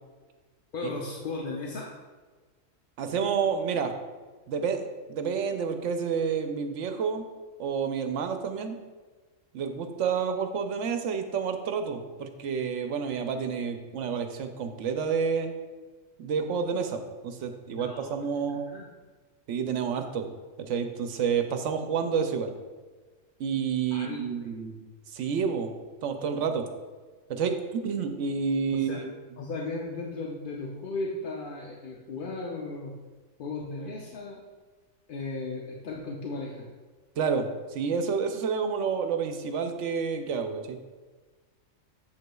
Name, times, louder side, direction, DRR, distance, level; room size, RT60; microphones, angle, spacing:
voice 1, 0.7-1.9 17.7-18.2 18.5-18.9 23.9-24.5 28.7-29.0 29.4-32.9 33.4-34.4 35.1-36.7, left 3 dB, 50° left, -1 dB, 0.7 m, -36 dB
voice 2, 3.0-3.9 4.5-7.2 7.6-8.8 9.5-15.5 16.2-18.7 19.5-20.3 20.6-22.5 23.4-24.8 25.1-25.7 26.0-26.7 27.3-29.1 37.2-37.5 37.7-40.8, right 6 dB, 70° right, 6 dB, 0.9 m, -29 dB
7.9 x 7.3 x 2.3 m, 1.4 s
omnidirectional pair, 1.4 m